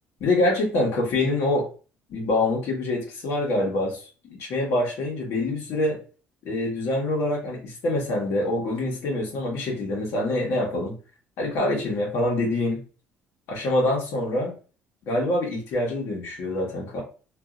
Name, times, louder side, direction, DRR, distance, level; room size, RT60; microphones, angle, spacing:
voice 1, 0.2-1.7 2.1-4.0 4.3-6.0 6.4-10.9 11.4-12.8 13.5-14.5 15.1-17.0, left 2 dB, 70° left, -2 dB, 1.2 m, -25 dB
2.7 x 2.6 x 2.4 m, 0.36 s
cardioid pair, 115°, 5 cm